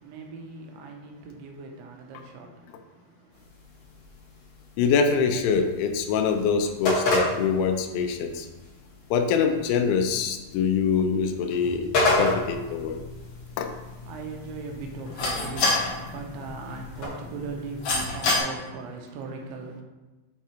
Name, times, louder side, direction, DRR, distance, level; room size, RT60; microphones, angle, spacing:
voice 1, 0.0-3.5 14.1-19.8, right 4 dB, 85° right, 3.2 m, -39 dB
sound 1, 3.3-17.1, left 1 dB, 45° left, 1.9 m, -32 dB
voice 2, 4.8-8.5 9.1-11.9 12.2-13.0 13.6-13.7, left 6 dB, 85° left, 3.0 m, -24 dB
sound 2, 12.0-18.4, left 3 dB, 65° left, 1.8 m, -31 dB
7.7 x 3.6 x 4.4 m
omnidirectional pair, 5.3 m